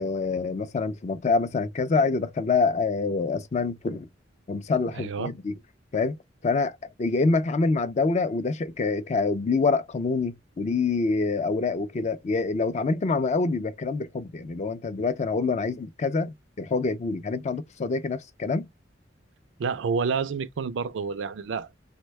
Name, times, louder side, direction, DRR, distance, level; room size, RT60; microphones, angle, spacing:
voice 1, 0.0-4.1 4.5-5.6 5.9-6.2 6.4-18.7, left 4 dB, 40° left, 0.4 m, -26 dB
voice 2, 4.9-5.3 19.6-21.8, right 5 dB, 80° right, 0.4 m, -29 dB
3.4 x 2.2 x 3.1 m
head